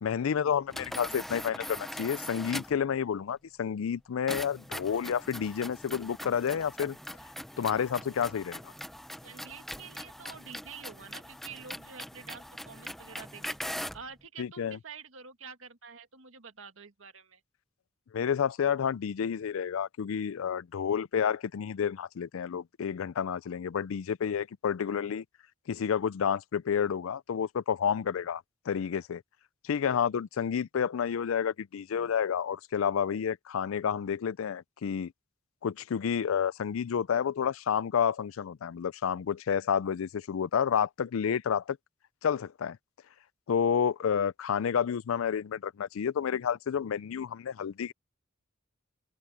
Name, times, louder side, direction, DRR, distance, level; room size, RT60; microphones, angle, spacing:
voice 1, 0.0-7.0 7.6-8.7 14.4-14.8 18.1-25.2 25.7-29.2 29.6-35.1 35.6-41.8 42.2-42.8 43.5-47.9, left 7 dB, 90° left, 0.4 m, -30 dB
sound 1, 0.7-2.9 4.3-14.1, equal, ahead, 0.7 m, -41 dB
voice 2, 9.2-13.6 13.9-17.4, right 6 dB, 75° right, 2.0 m, -48 dB
head